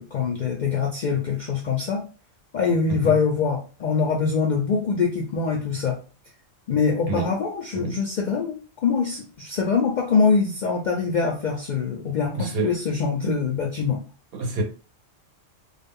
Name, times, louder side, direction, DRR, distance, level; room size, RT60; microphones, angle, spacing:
voice 1, 0.0-2.1 2.5-6.0 6.7-14.0, left 5 dB, 65° left, 0.4 m, -24 dB
voice 2, 7.1-7.4 7.7-8.0 12.4-12.8 14.3-14.6, right 2 dB, 60° right, 0.7 m, -28 dB
2.3 x 2.0 x 3.4 m
omnidirectional pair, 1.3 m